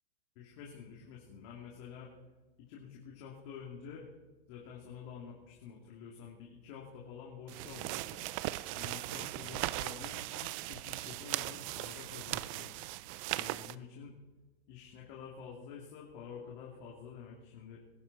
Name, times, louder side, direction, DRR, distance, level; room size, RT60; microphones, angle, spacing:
voice 1, 0.3-2.1 2.6-4.0 4.5-8.2 8.7-12.8 13.3-14.1 14.7-17.8, left 6 dB, 45° left, -2 dB, 2.9 m, -49 dB
sound 1, 7.5-13.7, right 18 dB, 35° right, 0.4 m, -38 dB
21.0 x 12.0 x 4.2 m, 1.2 s
hypercardioid pair, 135°, 31 cm